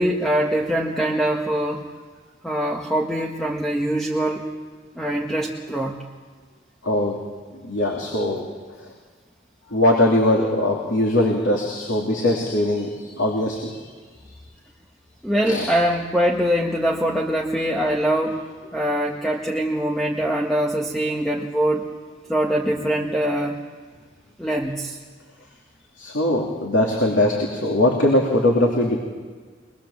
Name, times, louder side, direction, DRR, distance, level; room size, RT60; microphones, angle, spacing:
voice 1, 0.0-1.8 2.4-4.5 5.0-6.0 15.2-18.4 18.7-21.9 22.3-23.6 24.4-25.0, right 1 dB, ahead, 0 dB, 1.3 m, -23 dB
voice 2, 6.8-7.2 7.6-8.5 9.7-13.7 15.4-15.7 26.0-29.0, left 1 dB, 85° left, -1 dB, 2.9 m, -21 dB
24.0 x 20.5 x 7.3 m, 1.5 s
head